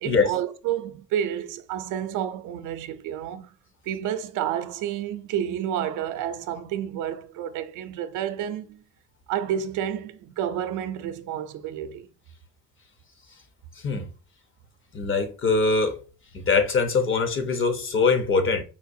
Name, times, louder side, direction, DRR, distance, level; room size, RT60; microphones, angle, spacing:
voice 1, 0.0-3.5 3.8-8.8 9.3-12.1, right 10 dB, 90° right, 0.5 m, -30 dB
voice 2, 14.9-16.0 16.3-18.6, left 4 dB, 40° left, 0.8 m, -22 dB
4.4 x 2.3 x 2.6 m
cardioid pair, 90°, 30 cm